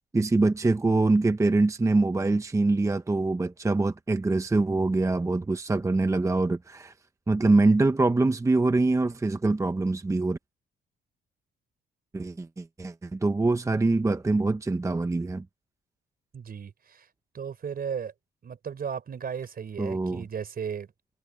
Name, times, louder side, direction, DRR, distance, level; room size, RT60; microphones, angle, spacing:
voice 1, 0.1-6.9 7.3-10.4 12.1-15.4 19.8-20.3, right 3 dB, 15° right, 0.7 m, -24 dB
voice 2, 16.3-17.1 17.3-18.1 18.4-20.9, right 7 dB, 50° right, 4.5 m, -35 dB
cardioid pair, 90°, 20 cm